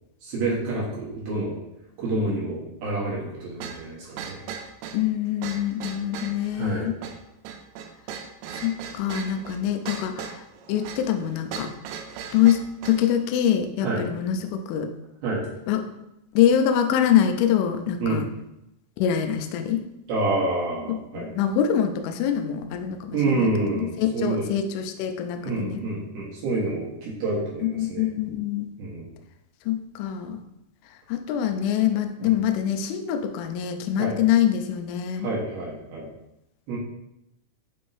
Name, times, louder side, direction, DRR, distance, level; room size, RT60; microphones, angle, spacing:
voice 1, 0.2-1.6 2.0-4.5 6.5-7.0 13.8-14.0 15.2-15.4 18.0-18.2 20.1-21.3 23.1-24.5 25.4-28.1 28.8-29.1 32.2-32.4 34.0-34.2 35.2-36.1 36.7-36.8, right 2 dB, 70° right, -6 dB, 2.4 m, -28 dB
sound 1, 3.6-13.1, right 7 dB, 85° right, 3.1 m, -38 dB
voice 2, 4.9-6.9 8.5-10.4 10.7-11.7 12.3-14.9 15.7-15.8 16.4-18.3 19.0-19.8 21.1-23.5 23.8-25.8 27.6-28.7 29.7-30.4 31.1-35.3, left 9 dB, 80° left, 6 dB, 3.0 m, -24 dB
9.9 x 3.7 x 2.6 m, 0.85 s
omnidirectional pair, 5.8 m